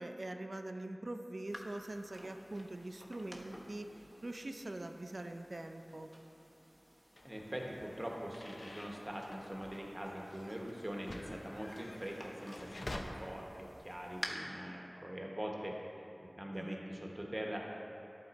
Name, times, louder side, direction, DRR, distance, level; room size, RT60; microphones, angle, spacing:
voice 1, 0.0-6.1 16.5-16.8, right 1 dB, 55° right, 6 dB, 0.4 m, -43 dB
sound 1, 1.5-14.3, equal, 5° right, 0.8 m, -53 dB
sound 2, 7.2-13.0, left 1 dB, 60° left, 0.5 m, -50 dB
voice 2, 7.2-15.7 16.2-17.7, equal, 25° right, -1 dB, 1.0 m, -43 dB
11.5 x 3.8 x 4.0 m, 2.9 s
wide cardioid pair, 55°, 0 cm